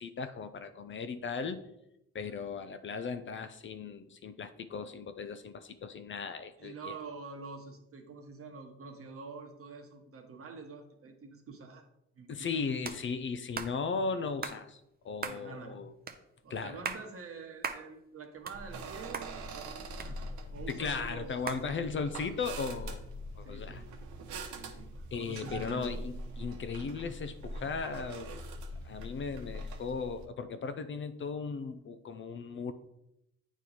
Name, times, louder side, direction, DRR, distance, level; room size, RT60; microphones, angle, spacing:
voice 1, 0.0-1.6 2.1-6.9 12.3-15.9 16.5-16.8 20.7-23.0 23.4-23.8 25.1-28.4 28.8-32.7, left 5 dB, 40° left, 10 dB, 0.5 m, -37 dB
voice 2, 6.6-11.9 12.1-12.6 15.2-15.8 16.4-21.3 21.6-21.9 23.4-23.9 24.5-26.0, right 4 dB, 50° right, 4 dB, 1.1 m, -46 dB
sound 1, 12.8-13.0 13.5-13.7 14.4-14.6 15.2-15.4 16.1-16.2 16.7-17.0 17.6-17.8 18.2-18.9 19.1-19.3 20.0-20.6 21.5-21.6, right 5 dB, 30° right, 0.6 m, -38 dB
sound 2, 18.5-30.3, right 1 dB, 80° right, 0.9 m, -43 dB
8.3 x 3.0 x 4.0 m, 0.82 s
cardioid pair, 90°, 30 cm